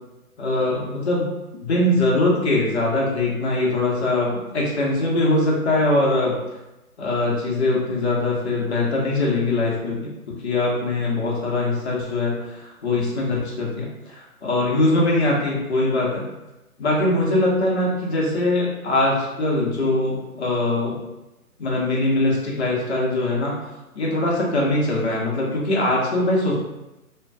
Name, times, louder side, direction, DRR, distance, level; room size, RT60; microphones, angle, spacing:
voice 1, 0.4-1.2 1.6-6.3 7.0-16.2 16.8-21.0 21.6-23.6 23.9-26.5, left 2 dB, 50° left, -3 dB, 0.8 m, -22 dB
2.6 x 2.2 x 2.2 m, 0.98 s
hypercardioid pair, 150°, 44 cm